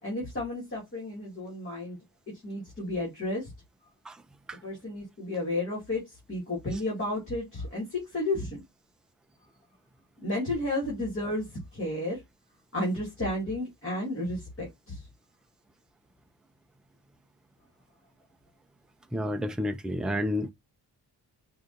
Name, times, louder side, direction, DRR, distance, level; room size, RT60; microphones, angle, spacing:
voice 1, 0.0-2.0 2.3-3.5 4.6-8.6 10.2-12.2 12.7-15.0, left 1 dB, 30° left, 2.1 m, -32 dB
voice 2, 19.1-20.5, left 1 dB, ahead, 0.3 m, -30 dB
4.8 x 2.7 x 2.5 m
wide cardioid pair, 125°, 41 cm